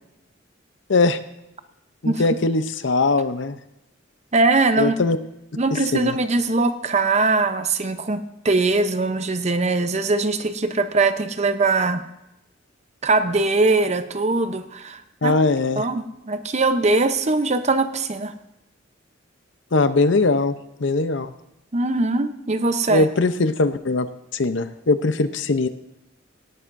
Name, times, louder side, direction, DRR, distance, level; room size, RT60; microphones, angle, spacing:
voice 1, 2.0-3.6 4.8-5.2 5.9-6.1 15.2-15.8 19.7-20.5 20.8-21.3 22.9-24.1 24.3-25.7, left 3 dB, 65° left, 11 dB, 0.7 m, -20 dB
voice 2, 4.3-4.9 5.6-12.0 13.0-15.4 15.8-18.3 21.7-23.1, right 3 dB, 35° right, 10 dB, 0.7 m, -21 dB
18.0 x 12.0 x 2.6 m, 0.88 s
head